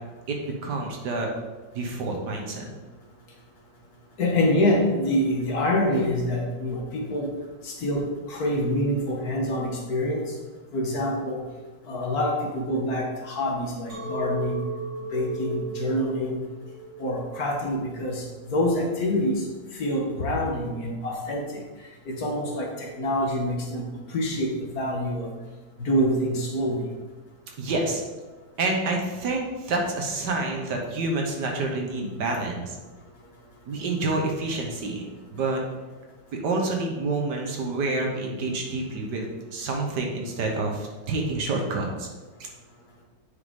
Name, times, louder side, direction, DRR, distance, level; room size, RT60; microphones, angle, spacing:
voice 1, 0.6-1.3 1.8-2.7 27.6-28.0 28.6-32.7 33.7-35.0 35.3-35.6 36.3-42.1, right 2 dB, 65° right, 1 dB, 1.7 m, -28 dB
voice 2, 4.2-7.3 7.6-10.2 10.7-11.4 11.9-14.6 15.1-16.4 17.0-19.4 19.8-21.6 22.1-25.3 25.8-26.9, left 1 dB, 55° left, 0 dB, 1.5 m, -26 dB
Chink clink, 13.9-19.1, right 4 dB, 85° right, 2.8 m, -36 dB
9.1 x 5.0 x 3.6 m, 1.3 s
omnidirectional pair, 2.0 m